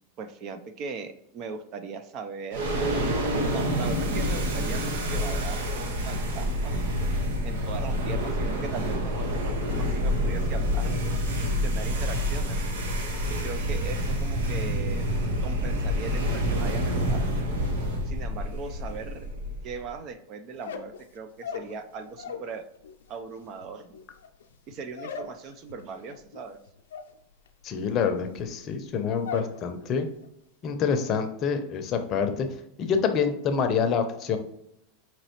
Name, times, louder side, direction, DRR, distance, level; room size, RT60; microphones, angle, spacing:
voice 1, 0.2-2.7 3.5-6.8 7.4-10.9 11.5-12.6 13.3-15.1 15.4-17.3 18.1-19.3 19.6-22.6 23.1-24.0 24.7-26.6, right 5 dB, 45° right, 9 dB, 0.5 m, -39 dB
sound 1, 2.5-19.9, equal, 75° right, 0.8 m, -27 dB
sound 2, 20.5-22.5 22.8-29.6 29.9-30.4 30.7-31.2, left 5 dB, 90° left, 0.5 m, -40 dB
voice 2, 27.6-30.1 30.6-32.5 32.8-34.4, left 6 dB, 40° left, 7 dB, 0.6 m, -26 dB
5.2 x 3.0 x 2.9 m, 0.77 s
hypercardioid pair, 115°, 0 cm